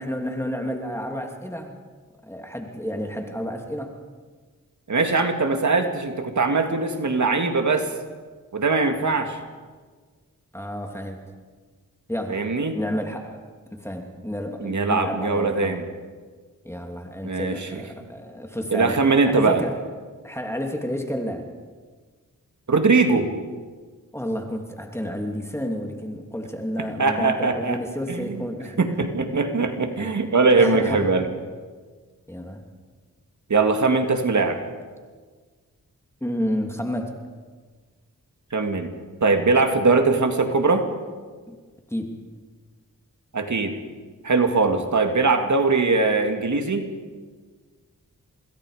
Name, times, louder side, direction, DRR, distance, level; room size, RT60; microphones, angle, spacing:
voice 1, 0.0-1.8 2.2-3.9 10.5-11.3 12.1-12.5 12.7-13.4 13.7-15.8 16.6-19.0 19.3-19.8 20.2-21.5 24.1-28.8 29.9-30.1 30.6-31.0 32.3-32.6 36.2-37.2 41.5-41.6 41.9-42.2 44.7-44.8, equal, 10° left, 3 dB, 2.8 m, -30 dB
voice 2, 4.9-7.9 8.5-9.4 12.3-12.8 14.6-15.8 17.2-17.6 18.7-19.6 22.7-23.3 27.0-27.8 28.1-28.4 28.8-31.3 33.5-34.6 38.5-38.9 39.2-40.9 43.3-43.8 44.2-46.9, right 3 dB, 60° right, 5 dB, 2.4 m, -21 dB
26.5 x 21.5 x 5.1 m, 1.5 s
cardioid pair, 55°, 33 cm